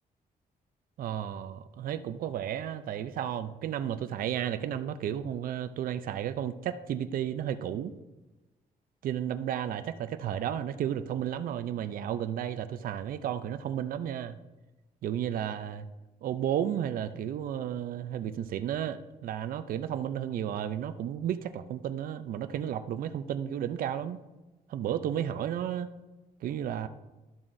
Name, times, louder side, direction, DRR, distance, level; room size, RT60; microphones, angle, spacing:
voice 1, 1.0-7.9 9.0-14.4 15.0-15.9 16.2-24.2 24.7-25.9 26.4-26.9, right 10 dB, 70° right, 10 dB, 0.5 m, -33 dB
12.0 x 7.2 x 2.6 m, 1.1 s
cardioid pair, 130°, 15 cm